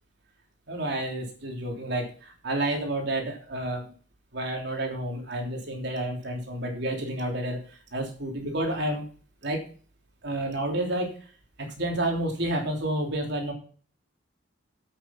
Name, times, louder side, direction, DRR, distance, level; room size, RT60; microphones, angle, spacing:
voice 1, 0.7-3.9 4.3-7.6 7.9-9.0 9.4-9.6 10.2-11.2 11.6-13.5, right 1 dB, 65° right, 2 dB, 3.3 m, -30 dB
8.7 x 8.6 x 5.7 m, 0.41 s
head